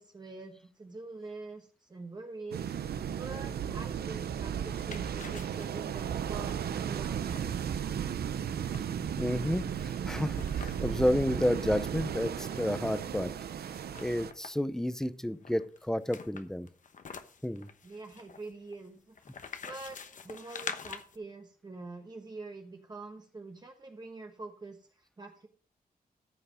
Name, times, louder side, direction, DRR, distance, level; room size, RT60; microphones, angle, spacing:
voice 1, 0.0-2.7 3.2-7.9 17.8-20.0 20.2-25.5, right 3 dB, 25° right, 3 dB, 1.1 m, -45 dB
sound 1, 2.5-14.3, right 8 dB, 90° right, 0.7 m, -35 dB
sound 2, 4.4-11.1 11.5-11.6 11.8-13.1 13.7-14.7 15.4-21.2, left 6 dB, 55° left, 1.0 m, -47 dB
voice 2, 9.2-13.3 13.9-16.7 17.4-17.7, left 1 dB, 5° left, 13 dB, 0.6 m, -31 dB
14.0 x 5.7 x 5.1 m, 0.43 s
wide cardioid pair, 135°, 16 cm